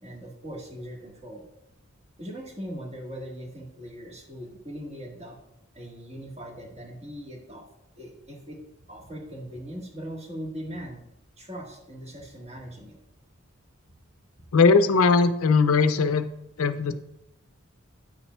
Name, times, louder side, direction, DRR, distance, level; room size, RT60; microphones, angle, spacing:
voice 1, 0.0-1.4 2.2-5.4 5.7-7.6 7.9-8.6 8.9-11.0 11.4-13.0, equal, 30° right, -1 dB, 1.4 m, -40 dB
voice 2, 14.5-16.3 16.6-16.9, left 4 dB, 85° left, 10 dB, 0.5 m, -19 dB
9.1 x 7.0 x 2.2 m, 0.83 s
head